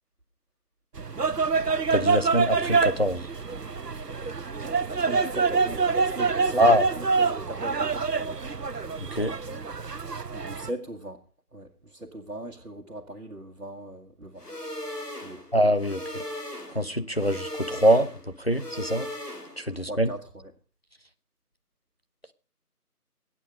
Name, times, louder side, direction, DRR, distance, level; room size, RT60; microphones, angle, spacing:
sound 1, 1.0-10.7, right 5 dB, 85° right, 1.0 m, -26 dB
voice 1, 1.9-3.3 6.6-6.8 9.1-9.3 15.5-16.2 16.7-18.1 18.4-19.1 19.6-20.1, equal, 40° left, 0.8 m, -23 dB
voice 2, 4.6-8.5 10.3-11.2 11.5-14.5 15.2-15.5 19.7-20.5, right 1 dB, 60° right, 1.7 m, -39 dB
sound 2, 14.4-19.8, left 1 dB, 80° left, 3.9 m, -38 dB
22.0 x 8.5 x 5.1 m
figure-of-eight pair, 175°, 47 cm